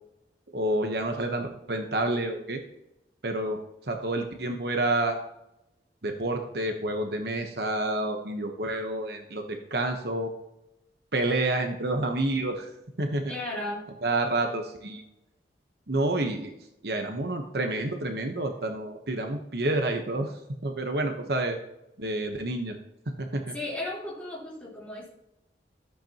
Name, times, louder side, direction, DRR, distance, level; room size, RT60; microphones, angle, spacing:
voice 1, 0.5-2.6 3.2-3.6 3.9-5.2 6.0-10.3 11.1-12.7 13.0-13.3 14.0-15.0 15.9-16.5 16.8-20.3 20.6-21.6 22.0-22.8 23.2-23.5, right 2 dB, 60° right, 4 dB, 1.1 m, -29 dB
voice 2, 13.3-13.8 23.5-25.1, left 1 dB, 5° left, -6 dB, 3.7 m, -35 dB
13.5 x 8.0 x 3.0 m, 0.85 s
head